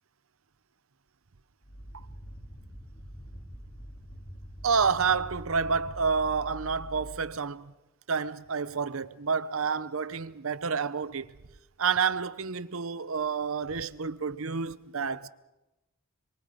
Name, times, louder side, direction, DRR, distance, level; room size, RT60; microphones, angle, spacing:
sound 1, 1.6-7.4, equal, 45° left, 2.4 m, -44 dB
voice 1, 4.6-7.7 8.1-11.3 11.8-15.3, right 5 dB, 70° right, 0.7 m, -29 dB
26.0 x 23.0 x 5.1 m
head